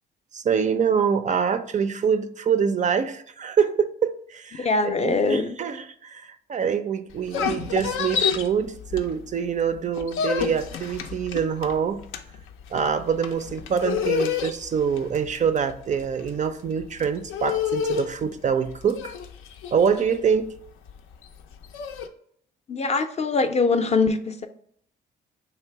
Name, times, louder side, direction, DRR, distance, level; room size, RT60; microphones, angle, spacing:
voice 1, 0.3-12.0 12.7-19.1 19.7-20.5, right 7 dB, 40° right, 0.4 m, -25 dB
voice 2, 4.6-5.6 22.7-24.5, left 3 dB, 35° left, 0.4 m, -23 dB
sound 1, 7.1-9.5 9.8-22.1, left 7 dB, 90° left, 0.5 m, -29 dB
3.3 x 2.9 x 4.5 m
cardioid pair, 90°, 20 cm